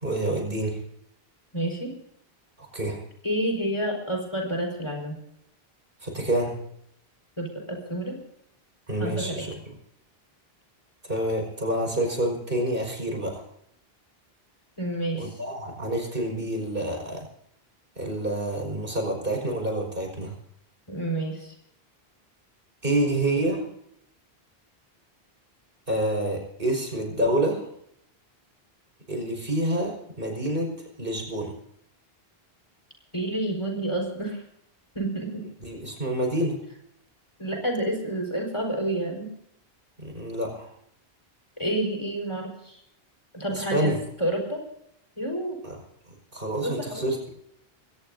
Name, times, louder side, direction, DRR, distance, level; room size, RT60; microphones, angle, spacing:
voice 1, 0.0-0.8 2.6-3.0 6.0-6.6 8.9-9.5 11.1-13.4 15.2-17.3 18.0-20.3 22.8-23.7 25.9-27.7 29.1-31.5 35.6-36.6 40.0-40.7 43.5-44.0 45.6-45.8 46.3-47.2, right 1 dB, 60° right, 2 dB, 5.4 m, -28 dB
voice 2, 1.5-1.9 3.2-5.2 7.4-8.2 9.0-9.4 14.8-15.4 20.9-21.5 33.1-34.4 34.9-35.4 37.4-39.3 41.6-42.8 43.3-43.9 44.2-44.6 45.2-45.6 46.6-47.1, right 1 dB, 30° left, 1 dB, 4.7 m, -29 dB
23.0 x 18.0 x 2.7 m, 0.73 s
omnidirectional pair, 1.0 m